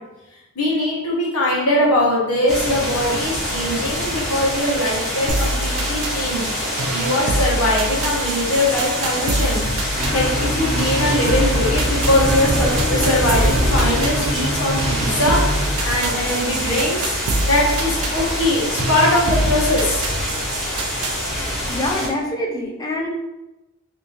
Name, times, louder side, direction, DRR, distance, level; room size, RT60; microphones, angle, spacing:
voice 1, 0.5-6.5 6.9-17.1 17.4-20.0, left 1 dB, 90° left, -4 dB, 1.1 m, -21 dB
sound 1, 2.5-22.1, equal, ahead, 0.8 m, -25 dB
sound 2, 5.3-21.3, right 1 dB, 80° right, 0.5 m, -26 dB
sound 3, 9.9-15.7, equal, 30° right, 0.6 m, -26 dB
voice 2, 21.7-23.1, left 1 dB, 15° left, 0 dB, 0.4 m, -25 dB
3.5 x 2.6 x 2.8 m, 1.0 s
head